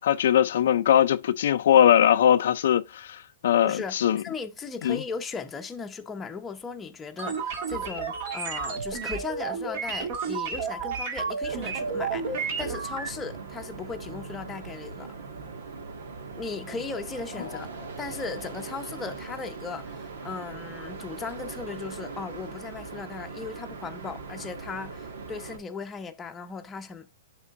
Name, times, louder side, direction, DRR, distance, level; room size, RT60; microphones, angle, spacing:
voice 1, 0.0-4.2 4.8-5.0, left 10 dB, 65° left, 0.4 m, -21 dB
voice 2, 3.6-15.1 16.4-17.7 18.0-27.1, left 5 dB, 10° left, 0.8 m, -37 dB
sound 1, 7.2-13.1, right 5 dB, 50° right, 1.8 m, -31 dB
sound 2, 11.5-25.6, right 4 dB, 85° right, 1.6 m, -40 dB
10.5 x 3.7 x 2.5 m
hypercardioid pair, 160°, 0 cm